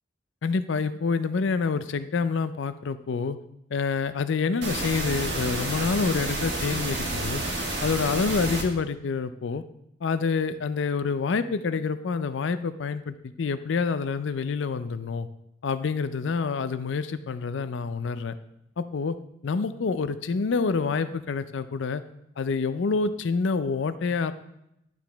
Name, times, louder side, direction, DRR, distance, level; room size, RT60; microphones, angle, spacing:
voice 1, 0.4-3.4 3.7-7.4 7.8-9.6 10.0-15.3 15.6-18.4 18.8-19.2 19.4-22.0 22.4-24.3, left 4 dB, 70° left, 12 dB, 0.4 m, -27 dB
sound 1, 4.6-8.6, right 2 dB, 60° right, 1.4 m, -30 dB
10.5 x 4.9 x 3.4 m, 0.80 s
head